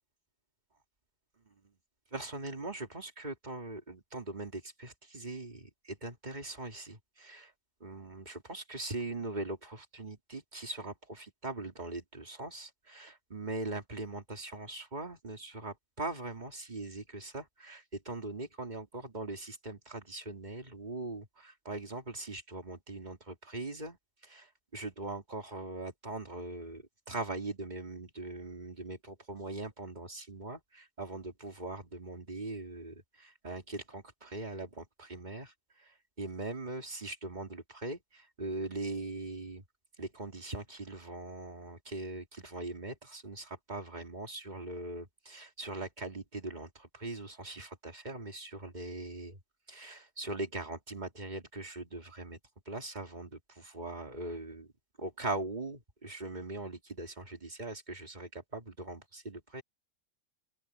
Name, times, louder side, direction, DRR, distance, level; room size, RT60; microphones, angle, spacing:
voice 1, 2.1-7.5 7.8-24.0 24.2-39.6 40.0-49.4 49.7-52.4 52.7-54.7 55.0-59.6, right 2 dB, 30° right, 2.8 m, -41 dB
open air
omnidirectional pair, 1.5 m